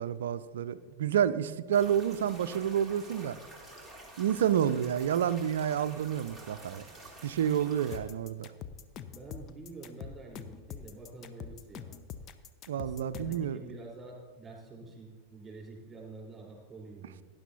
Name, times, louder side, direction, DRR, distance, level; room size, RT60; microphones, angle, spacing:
voice 1, 0.0-3.4 4.2-6.8 7.2-8.5 12.7-13.6, right 9 dB, 60° right, 15 dB, 0.5 m, -29 dB
sound 1, 1.7-8.0, right 1 dB, 5° left, 2.5 m, -49 dB
sound 2, 7.9-13.5, left 8 dB, 30° left, 0.7 m, -44 dB
voice 2, 9.1-12.0 12.7-17.2, right 3 dB, 15° right, -1 dB, 4.3 m, -47 dB
18.0 x 10.5 x 2.9 m, 1.3 s
figure-of-eight pair, 90°, 0 cm